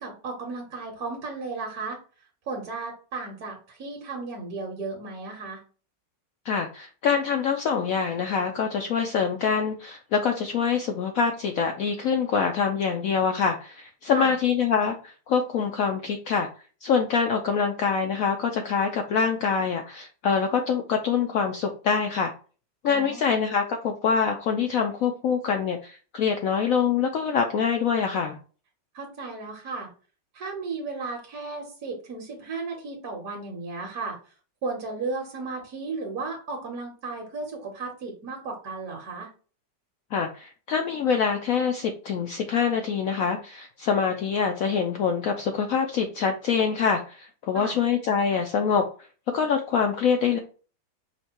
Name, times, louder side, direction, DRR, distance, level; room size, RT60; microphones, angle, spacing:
voice 1, 0.0-2.0 2.5-5.6 14.1-14.3 22.8-23.2 28.9-29.9 30.3-34.2 34.6-39.3 47.5-47.7, right 3 dB, 55° right, 0 dB, 1.4 m, -34 dB
voice 2, 6.5-16.5 16.8-22.3 22.8-28.4 40.1-48.8 49.3-50.4, left 6 dB, 75° left, 4 dB, 0.8 m, -25 dB
5.4 x 2.2 x 4.3 m, 0.38 s
omnidirectional pair, 2.0 m